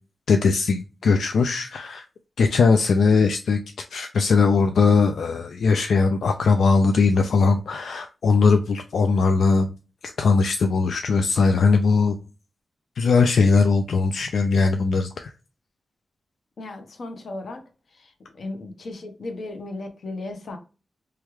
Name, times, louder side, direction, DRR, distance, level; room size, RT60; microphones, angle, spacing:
voice 1, 0.3-2.0 2.4-3.6 3.9-9.7 10.0-12.2 13.0-15.3, left 4 dB, 85° left, 0.3 m, -20 dB
voice 2, 16.6-17.6 17.9-20.6, left 2 dB, 60° left, 0.8 m, -36 dB
3.2 x 2.3 x 2.9 m
wide cardioid pair, 125°, 0 cm